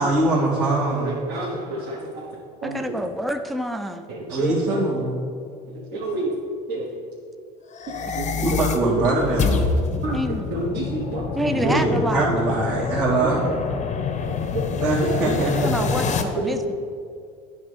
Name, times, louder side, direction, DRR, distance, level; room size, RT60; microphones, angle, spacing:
voice 1, 0.0-1.2 4.3-5.2 8.4-9.6 11.5-13.5 14.8-15.7, right 2 dB, 85° right, -10 dB, 2.1 m, -22 dB
voice 2, 1.0-2.2 2.6-2.8 4.1-4.8 5.7-6.3 6.7-6.8 8.1-8.3 9.0-9.1 9.5-9.6 10.0-10.2 10.5-11.8 12.2-12.4 13.4-13.5 14.5-14.6 15.2-15.3 16.1-16.5, right 2 dB, 55° right, -5 dB, 1.4 m, -29 dB
voice 3, 2.6-4.1 10.1-10.5 11.4-12.3 15.5-16.7, equal, ahead, 7 dB, 0.4 m, -27 dB
sound 1, 7.7-16.2, left 5 dB, 35° left, 0.8 m, -26 dB
9.1 x 3.6 x 6.4 m, 2.3 s
supercardioid pair, 90°, 21 cm